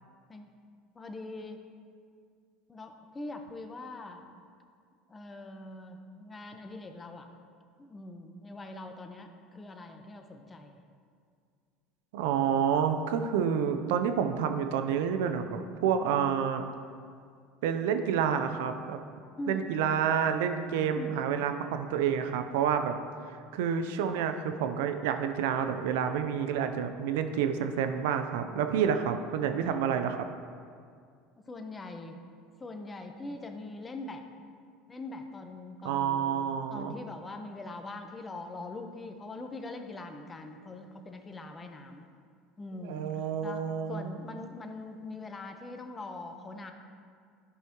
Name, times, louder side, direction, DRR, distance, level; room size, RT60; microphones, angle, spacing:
voice 1, 0.9-1.6 2.7-4.3 5.1-7.3 7.8-10.8 16.0-16.1 19.4-19.7 20.9-21.2 29.6-29.8 31.5-32.2 32.6-34.3 34.9-36.4 36.7-42.1 42.6-46.7, left 2 dB, 25° left, 5 dB, 1.0 m, -42 dB
voice 2, 12.1-16.6 17.6-19.0 19.5-22.9 23.3-30.2 35.8-36.9 42.8-44.1, right 8 dB, 75° right, 7 dB, 0.6 m, -29 dB
12.5 x 5.6 x 3.0 m, 2.2 s
hypercardioid pair, 80°, 0 cm